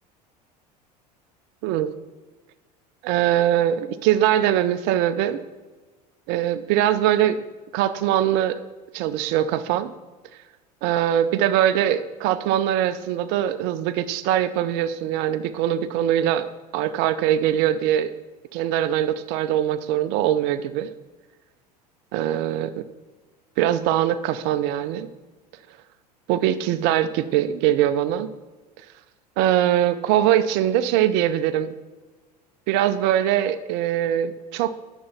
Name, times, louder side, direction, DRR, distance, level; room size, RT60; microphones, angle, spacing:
voice 1, 1.6-1.9 3.0-5.4 6.3-7.4 7.7-8.6 8.9-9.9 10.8-16.5 16.7-18.1 18.5-20.9 22.1-22.9 23.6-25.1 26.3-28.3 29.4-31.7 32.7-34.7, right 11 dB, 55° right, 13 dB, 0.6 m, -22 dB
11.0 x 6.9 x 4.3 m, 1.3 s
hypercardioid pair, 70°, 21 cm